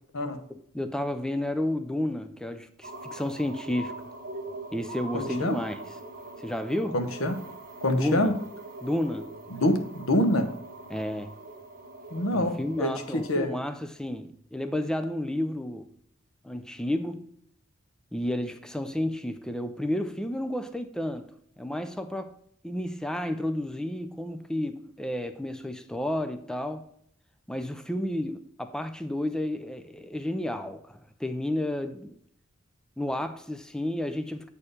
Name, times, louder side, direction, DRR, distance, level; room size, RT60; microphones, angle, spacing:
voice 1, 0.5-4.0 4.7-5.8 6.4-7.0 7.9-8.3 8.8-9.3 10.9-11.3 12.3-15.9 16.4-17.3 18.1-21.3 21.6-22.3 22.6-26.9 27.5-32.2 33.0-34.5, left 1 dB, 5° left, 0.4 m, -31 dB
sound 1, 2.8-13.4, right 2 dB, 45° right, 1.2 m, -42 dB
voice 2, 5.1-5.6 6.9-7.4 7.8-8.3 9.5-10.5 12.1-13.5, left 1 dB, 85° left, 1.0 m, -26 dB
8.4 x 4.4 x 5.0 m
head